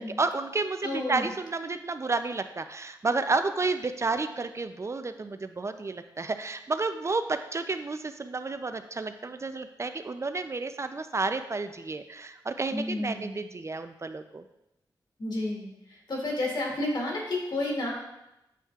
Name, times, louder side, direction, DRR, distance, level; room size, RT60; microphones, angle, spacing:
voice 1, 0.0-14.4, right 3 dB, 35° right, 9 dB, 0.4 m, -31 dB
voice 2, 0.8-1.3 12.7-13.4 15.2-17.9, left 1 dB, 65° left, -2 dB, 2.3 m, -31 dB
8.2 x 7.3 x 2.4 m, 0.89 s
cardioid pair, 70°, 8 cm